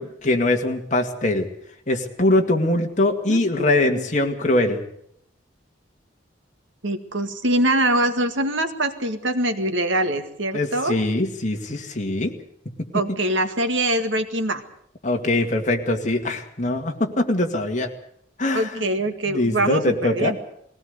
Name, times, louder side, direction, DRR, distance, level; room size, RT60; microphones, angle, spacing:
voice 1, 0.0-1.5 1.9-4.8 10.5-12.3 13.1-13.2 15.0-17.9 18.4-18.8 19.3-20.3, left 1 dB, 40° left, 4 dB, 2.3 m, -22 dB
voice 2, 3.3-4.0 6.8-11.0 12.9-14.6 18.5-20.4, right 1 dB, 80° right, 8 dB, 2.0 m, -23 dB
20.5 x 17.5 x 8.2 m, 0.70 s
head